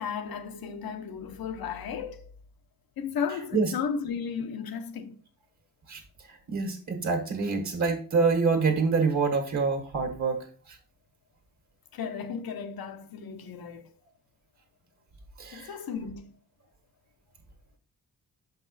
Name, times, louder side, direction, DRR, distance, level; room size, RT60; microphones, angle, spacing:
voice 1, 0.0-2.2 3.0-5.2 11.9-13.8 15.5-16.3, left 6 dB, 80° left, 0.9 m, -34 dB
voice 2, 6.3-10.8 15.4-15.7, right 4 dB, 55° right, 1.5 m, -26 dB
6.8 x 5.3 x 4.0 m
wide cardioid pair, 150°, 35 cm